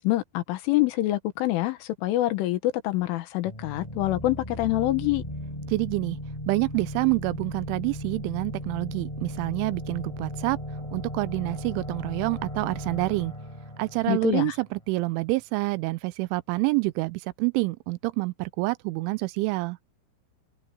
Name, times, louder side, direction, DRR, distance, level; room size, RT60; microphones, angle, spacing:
voice 1, 0.0-5.2 14.1-14.6, left 16 dB, 90° left, 3.9 m, -26 dB
sound 1, 3.5-15.0, equal, 5° left, 7.5 m, -36 dB
voice 2, 5.7-6.2 6.5-10.6 10.9-13.3 13.8-19.8, right 23 dB, 85° right, 3.1 m, -27 dB
omnidirectional pair, 5.5 m